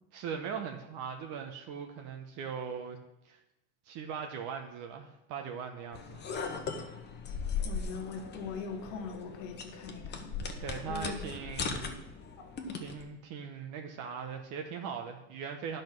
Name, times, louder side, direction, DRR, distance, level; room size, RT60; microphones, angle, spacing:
voice 1, 0.1-3.0 3.2-3.4 3.9-6.2 10.6-12.1 12.7-15.8, right 6 dB, 55° right, 4 dB, 1.1 m, -40 dB
sound 1, 5.9-13.0, left 5 dB, 25° left, 1.1 m, -38 dB
voice 2, 7.6-10.3 10.9-11.2 11.8-11.9 12.4-12.8, left 5 dB, 75° left, 4 dB, 1.6 m, -41 dB
10.5 x 5.4 x 6.0 m, 0.87 s
supercardioid pair, 125°, 38 cm